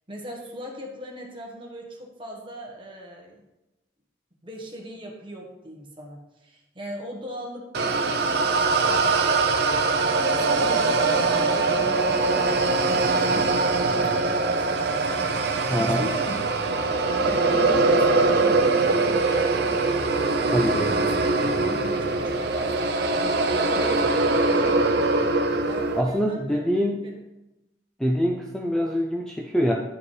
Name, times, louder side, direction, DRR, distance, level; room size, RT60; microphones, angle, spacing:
voice 1, 0.1-3.4 4.4-15.1 15.7-19.9 20.8-21.1 21.6-24.9 25.6-26.6 27.0-27.1, equal, 25° right, 0 dB, 1.3 m, -38 dB
sound 1, 7.7-26.0, right 3 dB, 60° right, 0.6 m, -22 dB
voice 2, 15.7-16.1 20.5-21.0 25.9-27.0 28.0-29.7, equal, 5° left, 0 dB, 0.5 m, -24 dB
10.0 x 5.0 x 3.2 m, 0.98 s
head